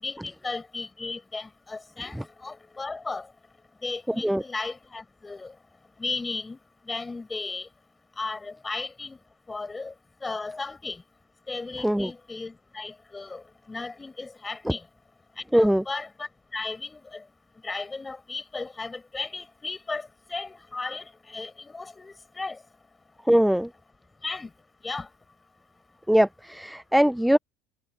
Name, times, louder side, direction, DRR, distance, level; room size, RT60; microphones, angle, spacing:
voice 1, 0.0-3.3 3.8-5.5 6.0-6.6 6.9-7.7 8.2-9.2 9.5-9.9 10.2-11.0 11.5-14.8 15.5-17.2 17.6-22.6 24.2-24.5 24.8-25.1, left 3 dB, 15° left, 5.5 m, -35 dB
voice 2, 4.1-4.4 11.8-12.1 15.5-15.8 23.3-23.7 26.1-27.4, equal, ahead, 0.3 m, -21 dB
supercardioid pair, 95°, 0 cm